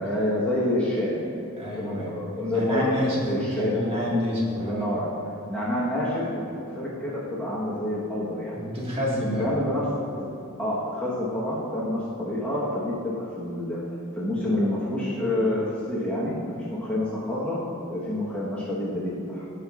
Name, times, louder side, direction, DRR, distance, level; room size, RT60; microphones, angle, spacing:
voice 1, 0.0-1.5 1.8-2.9 3.3-4.0 4.6-5.1 5.5-6.4 6.7-8.5 9.4-9.8 10.6-13.8 14.1-17.6 17.9-19.4, left 1 dB, 5° left, -8 dB, 1.1 m, -28 dB
voice 2, 1.6-2.1 2.4-4.9 8.6-9.4, left 1 dB, 25° right, -6 dB, 1.7 m, -28 dB
16.5 x 5.7 x 2.4 m, 2.9 s
head